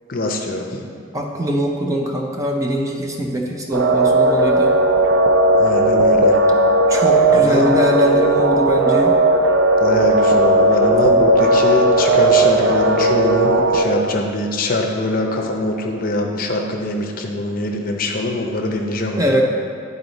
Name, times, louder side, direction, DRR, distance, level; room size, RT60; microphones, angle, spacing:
voice 1, 0.1-0.8 5.6-6.4 7.3-7.7 9.8-19.2, left 2 dB, 45° left, 2 dB, 0.6 m, -22 dB
voice 2, 1.1-4.7 6.9-9.2 19.2-19.4, equal, 15° right, 0 dB, 0.5 m, -21 dB
sound 1, 3.7-13.8, right 1 dB, 75° right, 0.5 m, -15 dB
9.6 x 4.0 x 4.0 m, 2.5 s
head